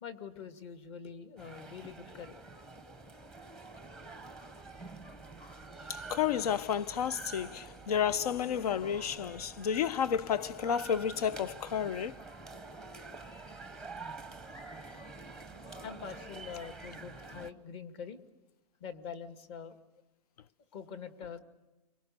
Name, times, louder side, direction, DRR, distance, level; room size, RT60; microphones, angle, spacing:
voice 1, 0.0-2.4 13.7-13.8 14.8-15.0 15.8-18.2 18.8-19.8 20.7-21.4, left 6 dB, 40° left, 2.1 m, -45 dB
sound 1, 1.4-17.5, right 3 dB, 5° left, 0.8 m, -47 dB
voice 2, 5.9-12.2, left 8 dB, 70° left, 0.8 m, -31 dB
29.5 x 24.5 x 6.8 m
supercardioid pair, 170°, 20 cm